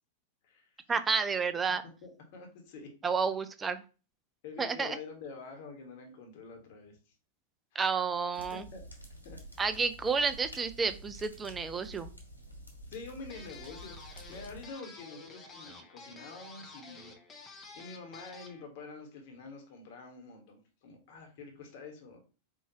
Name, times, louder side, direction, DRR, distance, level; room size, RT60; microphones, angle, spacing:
voice 1, 0.9-1.8 3.0-3.8 4.6-5.0 7.7-8.6 9.6-12.1, right 5 dB, 15° right, 11 dB, 0.4 m, -30 dB
voice 2, 2.0-2.9 4.4-7.1 8.5-8.8 9.2-9.4 12.9-22.2, left 4 dB, 50° left, 3 dB, 1.4 m, -47 dB
sound 1, 8.3-14.7, equal, 90° right, 1.0 m, -49 dB
sound 2, 13.3-18.6, left 3 dB, 25° left, 0.8 m, -50 dB
4.5 x 2.8 x 2.9 m, 0.33 s
figure-of-eight pair, 90°, 0 cm